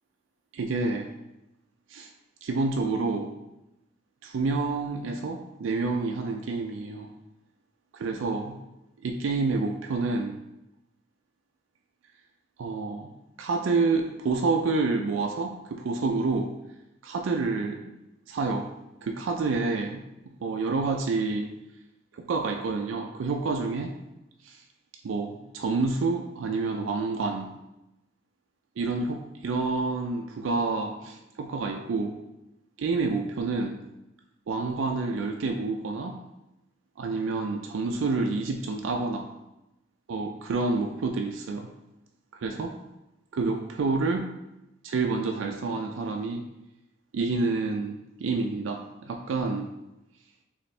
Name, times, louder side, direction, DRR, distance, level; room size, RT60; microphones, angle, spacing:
voice 1, 0.5-1.1 1.9-2.1 2.4-3.3 4.2-7.1 7.9-8.6 9.0-10.4 12.6-13.1 13.4-16.5 17.0-17.9 18.3-18.7 19.0-20.0 20.4-21.5 22.1-23.9 24.4-24.6 25.0-27.5 28.8-32.2 32.8-33.8 34.5-36.2 37.0-39.3 40.1-41.7 42.4-42.8 43.3-44.3 44.8-46.5 47.1-49.7, right 3 dB, 80° right, 2 dB, 0.4 m, -28 dB
4.2 x 3.1 x 3.2 m, 0.92 s
head